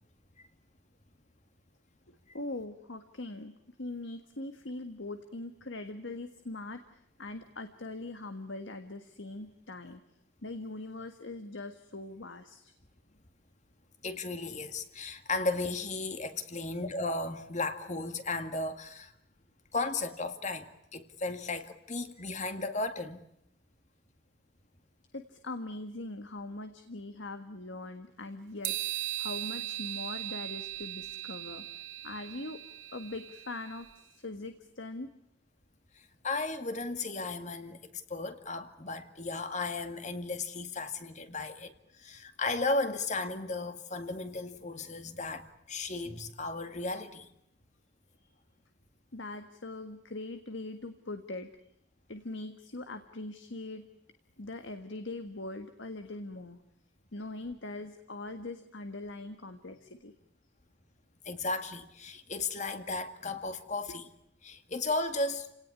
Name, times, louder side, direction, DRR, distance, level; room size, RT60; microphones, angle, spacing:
voice 1, 2.1-10.0 10.4-12.7 25.1-28.8 29.2-31.7 32.0-32.6 32.9-35.1 48.2-48.3 49.1-51.5 52.1-53.9 54.4-56.6 57.1-60.1, left 2 dB, 65° left, 1.7 m, -41 dB
voice 2, 14.0-19.1 19.7-23.2 36.0-47.3 61.3-64.1 64.4-65.5, left 3 dB, 35° left, 2.0 m, -35 dB
sound 1, 28.6-33.9, right 15 dB, 75° right, 3.1 m, -38 dB
29.5 x 18.5 x 9.8 m
head